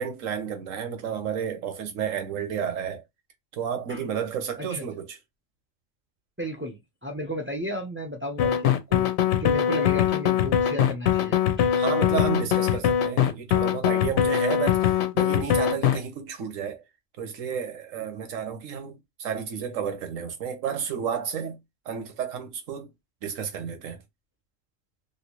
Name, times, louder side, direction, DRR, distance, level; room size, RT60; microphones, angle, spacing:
voice 1, 0.0-3.0 3.5-5.2 11.8-16.8 17.2-21.6 21.8-22.9 23.2-24.0, right 7 dB, 80° right, 1.2 m, -31 dB
voice 2, 6.4-9.1 9.4-11.7, equal, 15° right, 0.5 m, -34 dB
sound 1, 8.4-16.0, left 10 dB, 65° left, 0.8 m, -22 dB
3.2 x 2.7 x 3.0 m
omnidirectional pair, 1.3 m